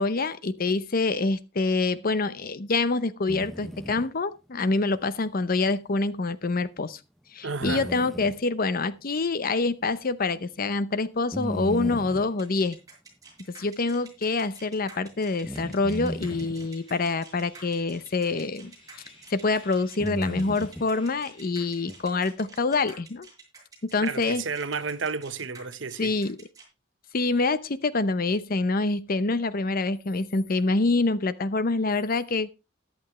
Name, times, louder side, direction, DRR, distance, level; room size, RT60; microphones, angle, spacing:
voice 1, 0.0-7.0 7.3-12.8 13.6-18.7 19.3-23.3 23.9-24.4 26.0-26.4 27.1-32.5, left 3 dB, 50° left, 0.7 m, -26 dB
sound 1, 3.3-4.1 7.6-8.4 11.3-12.3 15.4-16.7 18.6-18.7 20.0-20.9 21.9-22.0, equal, ahead, 0.6 m, -35 dB
voice 2, 7.4-7.9 24.0-26.1, right 5 dB, 70° right, 1.0 m, -32 dB
sound 2, 12.4-26.6, right 4 dB, 20° right, 6.6 m, -49 dB
sound 3, 15.3-22.3, left 1 dB, 30° left, 6.8 m, -57 dB
14.0 x 11.5 x 3.1 m
head